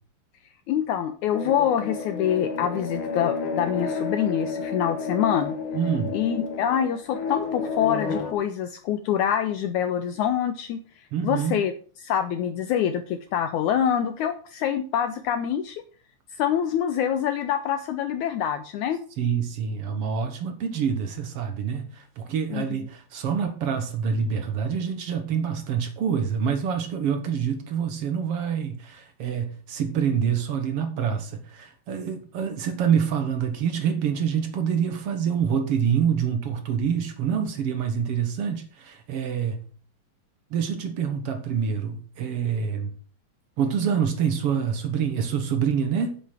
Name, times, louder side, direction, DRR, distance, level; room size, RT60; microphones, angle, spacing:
voice 1, 0.7-5.5 6.1-10.8 11.2-11.7 12.0-15.8 16.3-19.0 22.5-22.8, left 9 dB, 75° left, 1.8 m, -25 dB
sound 1, 1.3-8.3, left 4 dB, 60° left, 1.4 m, -31 dB
voice 2, 5.7-6.1 11.1-11.6 19.2-39.7 40.5-42.9 43.6-46.2, right 7 dB, 60° right, 1.6 m, -26 dB
8.1 x 7.8 x 5.8 m
omnidirectional pair, 4.1 m